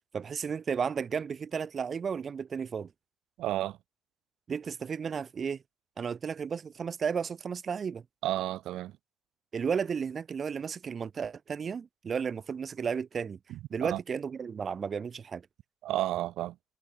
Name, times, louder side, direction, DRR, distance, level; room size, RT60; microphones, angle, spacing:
voice 1, 0.1-2.9 4.5-5.6 6.0-8.0 9.5-13.4 13.7-15.5, right 6 dB, 45° right, 2.1 m, -33 dB
voice 2, 3.4-3.8 8.2-8.9 13.5-14.0 15.8-16.6, right 14 dB, 85° right, 0.8 m, -32 dB
cardioid pair, 90°, 0 cm